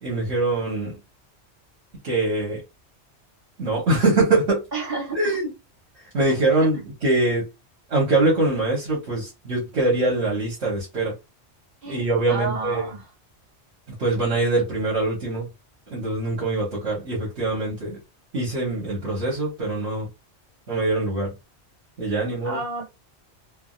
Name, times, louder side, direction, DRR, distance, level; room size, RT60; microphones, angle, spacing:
voice 1, 0.0-1.0 2.0-2.6 3.6-4.6 5.1-5.5 6.1-7.5 7.9-11.1 11.8-12.9 14.0-15.5 15.9-18.0 18.3-20.1 20.7-21.3 22.0-22.6, right 2 dB, 70° right, 1.5 m, -23 dB
voice 2, 4.7-5.4 6.5-6.6 11.8-13.1 22.4-22.9, right 3 dB, 55° right, 1.9 m, -31 dB
3.5 x 2.3 x 2.4 m
omnidirectional pair, 1.1 m